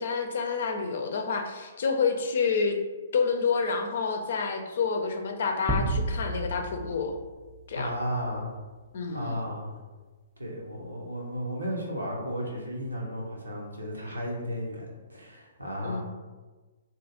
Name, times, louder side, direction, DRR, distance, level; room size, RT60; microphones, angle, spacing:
voice 1, 0.0-2.8 3.1-7.2 7.7-8.0 8.9-9.4 15.8-16.0, left 5 dB, 60° left, 5 dB, 0.5 m, -28 dB
sound 1, 5.7-8.1, right 1 dB, 5° right, 0.4 m, -31 dB
voice 2, 7.7-8.5 9.1-9.7 10.4-16.0, equal, 85° right, -2 dB, 0.8 m, -34 dB
2.7 x 2.4 x 3.7 m, 1.3 s
figure-of-eight pair, 120°, 0 cm